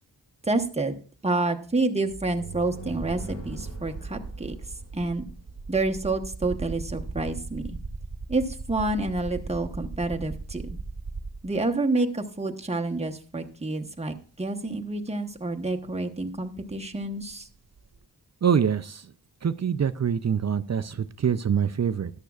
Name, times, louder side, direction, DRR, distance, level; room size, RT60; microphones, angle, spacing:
voice 1, 0.4-1.0 1.2-4.5 4.9-5.2 5.7-7.8 8.3-10.8 11.4-17.5, right 2 dB, 15° right, 0.9 m, -28 dB
sound 1, 2.1-5.7, right 2 dB, 40° left, 2.2 m, -42 dB
sound 2, 2.9-11.7 12.8-12.9 15.1-15.2 15.4-18.0, right 4 dB, 65° right, 1.0 m, -38 dB
voice 2, 18.4-19.0 19.4-22.1, right 7 dB, 40° right, 0.4 m, -25 dB
13.0 x 10.5 x 2.4 m
wide cardioid pair, 75°, 41 cm